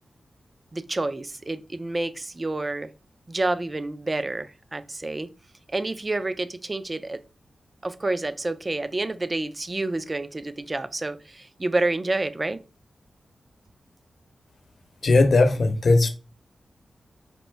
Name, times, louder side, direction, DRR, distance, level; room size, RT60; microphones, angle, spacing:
voice 1, 0.7-2.9 3.3-5.3 5.7-7.2 7.8-12.6, right 2 dB, 30° right, 0.3 m, -29 dB
voice 2, 15.0-16.1, left 3 dB, 60° left, 0.7 m, -18 dB
4.1 x 2.5 x 3.2 m
wide cardioid pair, 95°, 0 cm